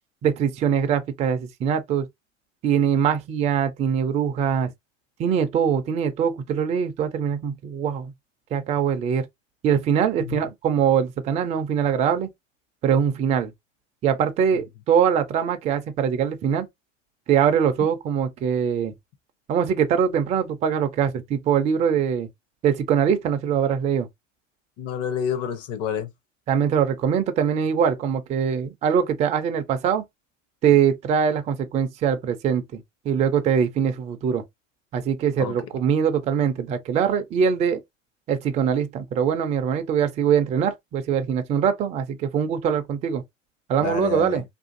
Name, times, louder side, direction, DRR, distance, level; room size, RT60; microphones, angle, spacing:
voice 1, 0.2-2.1 2.6-4.7 5.2-8.1 8.5-9.3 9.6-12.3 12.8-13.5 14.0-16.7 17.3-18.9 19.5-22.3 22.6-24.1 26.5-30.0 30.6-34.4 34.9-37.8 38.3-43.2 43.7-44.4, right 7 dB, 20° right, 0.3 m, -22 dB
voice 2, 24.8-26.1 35.4-35.5 43.8-44.4, left 8 dB, 40° left, 0.6 m, -28 dB
2.6 x 2.4 x 2.5 m
hypercardioid pair, 90°, 39 cm